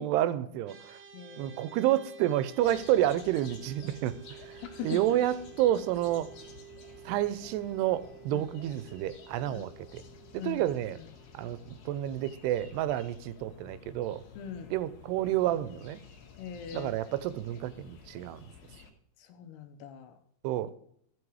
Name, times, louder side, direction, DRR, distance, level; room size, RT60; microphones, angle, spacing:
voice 1, 0.0-1.0 1.4-6.3 7.1-10.0 10.3-11.0 11.3-14.2 14.7-16.0 16.7-18.4 20.4-20.7, right 13 dB, 85° right, 15 dB, 2.8 m, -30 dB
sound 1, 0.6-12.1, right 10 dB, 45° right, 1.6 m, -52 dB
voice 2, 1.1-1.8 4.7-5.0 8.3-8.5 9.5-9.7 10.4-11.1 14.4-14.7 16.4-17.2 19.2-20.1, left 7 dB, 80° left, 6 dB, 3.2 m, -42 dB
sound 2, 2.6-18.9, left 6 dB, 65° left, 3.3 m, -52 dB
14.5 x 5.8 x 4.8 m, 0.69 s
omnidirectional pair, 4.7 m